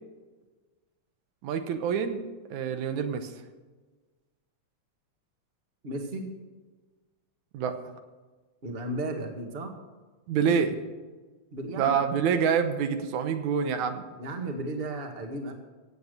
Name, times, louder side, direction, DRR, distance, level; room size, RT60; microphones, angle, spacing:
voice 1, 1.4-2.2 2.5-3.3 7.5-7.7 10.3-10.8 11.8-14.0, right 7 dB, 85° right, 8 dB, 2.5 m, -26 dB
voice 2, 5.8-6.3 8.6-9.8 11.5-12.0 14.2-15.5, right 1 dB, 25° right, 4 dB, 1.5 m, -34 dB
16.5 x 8.3 x 6.6 m, 1.3 s
omnidirectional pair, 3.3 m